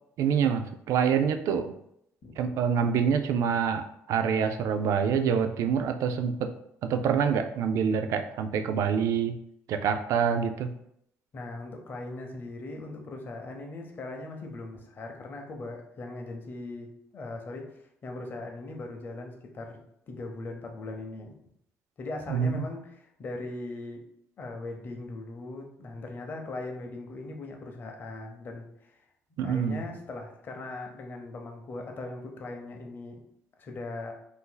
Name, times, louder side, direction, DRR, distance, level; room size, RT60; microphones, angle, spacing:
voice 1, 0.2-1.7 2.4-6.5 6.8-9.4 9.7-10.7 22.3-22.6 29.4-29.8, right 7 dB, 70° right, 7 dB, 0.3 m, -26 dB
voice 2, 11.3-19.8 20.1-21.3 22.0-24.0 24.4-28.9 29.4-33.2 33.6-34.1, left 2 dB, 35° left, 2 dB, 0.6 m, -39 dB
2.6 x 2.4 x 3.8 m, 0.75 s
cardioid pair, 155°, 5 cm